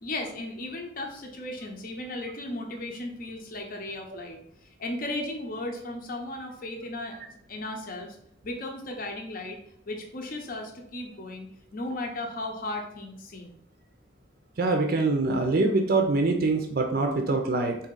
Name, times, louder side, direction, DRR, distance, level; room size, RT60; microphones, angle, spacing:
voice 1, 0.0-8.2 8.4-9.6 9.9-13.6, left 2 dB, 50° left, 3 dB, 0.7 m, -36 dB
voice 2, 14.6-17.8, right 3 dB, 50° right, 4 dB, 0.5 m, -24 dB
4.0 x 2.7 x 3.8 m, 0.70 s
head